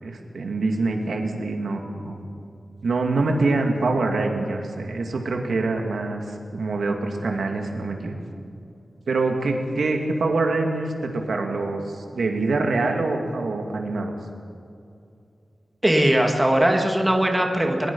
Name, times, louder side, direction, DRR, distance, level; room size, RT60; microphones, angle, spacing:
voice 1, 0.0-2.3 2.8-8.2 9.1-14.1, right 3 dB, 80° right, 3 dB, 2.3 m, -25 dB
voice 2, 15.8-17.9, right 1 dB, 10° right, 2 dB, 2.0 m, -20 dB
22.0 x 21.0 x 5.6 m, 2.5 s
wide cardioid pair, 135°, 0 cm